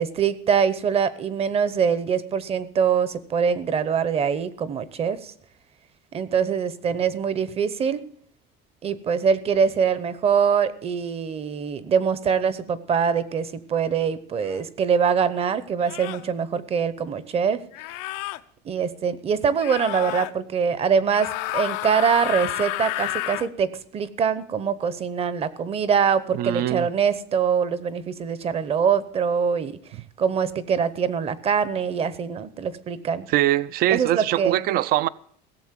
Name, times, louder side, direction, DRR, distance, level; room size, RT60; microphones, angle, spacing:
voice 1, 0.0-5.3 6.1-8.0 8.8-17.6 18.6-29.8 30.2-33.3 33.9-34.6, right 7 dB, 30° right, 0.8 m, -23 dB
sound 1, 14.4-14.6 15.8-16.3 17.7-18.4 19.6-20.3 21.1-23.5, left 18 dB, 90° left, 0.8 m, -30 dB
voice 2, 26.4-26.9 33.3-35.1, right 14 dB, 45° right, 0.5 m, -22 dB
16.5 x 7.3 x 7.4 m
cardioid pair, 155°, 20 cm